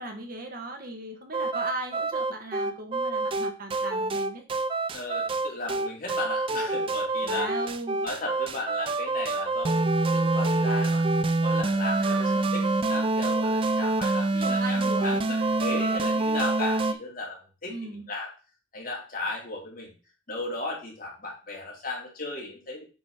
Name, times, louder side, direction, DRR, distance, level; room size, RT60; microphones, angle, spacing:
voice 1, 0.0-4.4 7.2-8.0 12.0-12.4 14.4-15.2 15.8-16.1 17.7-18.1, right 2 dB, 45° right, 4 dB, 1.1 m, -37 dB
sound 1, 1.3-16.9, right 2 dB, 25° right, 0.4 m, -26 dB
voice 2, 4.9-7.7 8.0-11.0 11.4-17.7 18.1-18.3 18.7-19.9 20.3-22.9, left 2 dB, 45° left, -2 dB, 2.3 m, -36 dB
8.0 x 3.9 x 3.4 m, 0.35 s
head